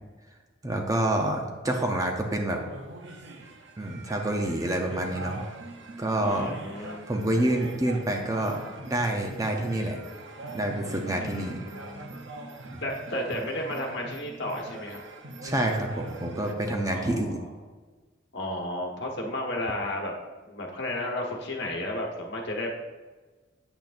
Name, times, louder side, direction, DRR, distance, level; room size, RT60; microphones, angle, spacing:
voice 1, 0.6-2.6 3.8-5.4 6.0-6.5 6.8-10.0 10.5-11.7 12.7-12.8 15.4-17.4, right 1 dB, 15° right, 2 dB, 0.6 m, -28 dB
sound 1, 2.5-16.5, right 2 dB, 60° right, 0.7 m, -42 dB
voice 2, 6.2-7.0 11.2-12.1 12.8-15.0 16.9-17.4 18.3-20.1 20.5-22.7, left 1 dB, 60° left, 0 dB, 1.3 m, -33 dB
8.8 x 8.1 x 2.6 m, 1.3 s
head